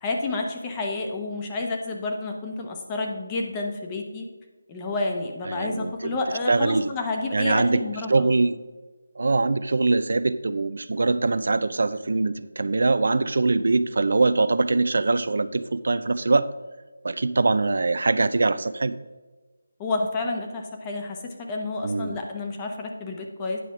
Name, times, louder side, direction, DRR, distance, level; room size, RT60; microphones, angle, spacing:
voice 1, 0.0-4.3 4.7-8.3 19.8-23.6, left 2 dB, 15° left, 2 dB, 0.8 m, -30 dB
voice 2, 5.5-6.1 6.5-6.9 7.3-7.8 8.1-8.6 9.2-16.5 17.0-19.0 21.8-22.2, right 3 dB, 65° right, 13 dB, 0.4 m, -23 dB
9.3 x 4.9 x 5.6 m, 1.3 s
figure-of-eight pair, 170°, 0 cm